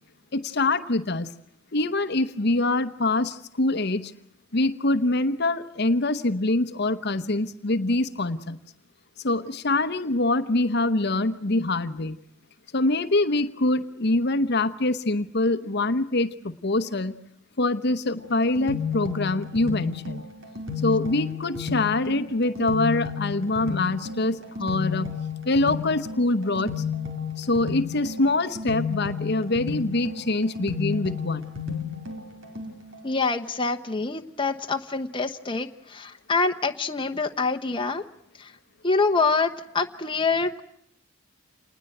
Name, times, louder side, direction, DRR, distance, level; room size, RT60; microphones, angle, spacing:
voice 1, 0.3-1.3 1.7-4.1 4.5-8.6 9.2-12.2 12.7-17.2 17.6-20.2 20.8-25.1 25.4-26.8 27.4-31.5, left 2 dB, 50° left, 11 dB, 1.0 m, -24 dB
sound 1, 18.2-33.1, left 6 dB, 70° right, 4.8 m, -32 dB
voice 2, 33.0-38.0 38.4-38.5 38.8-40.6, left 4 dB, 25° left, 5 dB, 1.1 m, -26 dB
28.0 x 20.0 x 7.9 m, 0.75 s
head